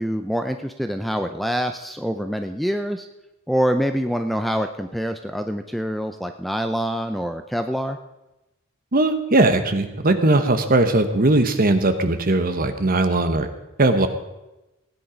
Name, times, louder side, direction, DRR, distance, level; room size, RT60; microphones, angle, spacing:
voice 1, 0.0-3.1 3.5-8.0, equal, ahead, 7 dB, 0.5 m, -25 dB
voice 2, 8.9-13.5 13.8-14.1, right 2 dB, 45° right, 8 dB, 1.1 m, -19 dB
16.5 x 9.7 x 5.1 m, 0.99 s
head